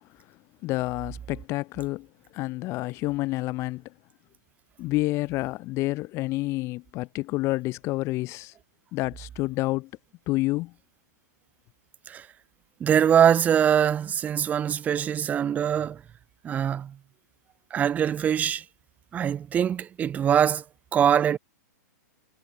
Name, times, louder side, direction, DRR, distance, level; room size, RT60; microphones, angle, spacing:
voice 1, 0.6-2.1 2.3-3.9 4.8-8.5 8.9-9.9 10.3-10.7, left 20 dB, 30° left, 1.2 m, -29 dB
voice 2, 12.8-16.0 16.4-16.9 17.7-18.6 19.1-20.6 20.9-21.4, right 9 dB, 15° right, 1.0 m, -23 dB
hypercardioid pair, 150°, 10 cm